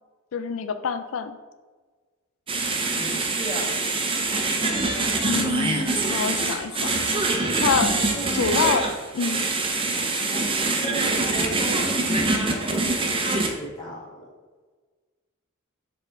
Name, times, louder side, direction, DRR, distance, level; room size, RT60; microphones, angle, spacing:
voice 1, 0.3-1.4 5.3-7.0 7.6-8.1 8.3-9.4, left 5 dB, 70° left, 10 dB, 0.4 m, -26 dB
sound 1, 2.5-13.5, right 3 dB, 25° right, 0.7 m, -24 dB
voice 2, 2.9-3.7 4.5-4.7 7.9-8.4 10.3-10.5 10.8-14.3, right 1 dB, 20° left, -5 dB, 1.9 m, -36 dB
6.7 x 4.0 x 4.4 m, 1.4 s
head